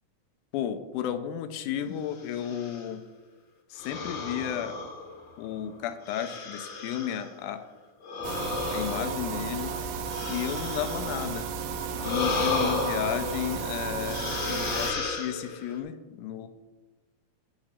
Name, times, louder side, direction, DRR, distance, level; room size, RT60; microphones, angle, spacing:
voice 1, 0.5-3.0 3.7-4.8 5.4-7.7 8.7-11.5 12.0-16.5, left 10 dB, 80° left, 10 dB, 2.0 m, -33 dB
sound 1, 2.2-2.9 3.8-5.4 6.0-7.3 8.0-11.4 12.0-13.6 14.0-15.8, left 4 dB, 55° left, 1.2 m, -33 dB
sound 2, 8.2-14.9, right 6 dB, 80° right, 2.0 m, -33 dB
6.5 x 6.0 x 7.3 m, 1.2 s
omnidirectional pair, 3.8 m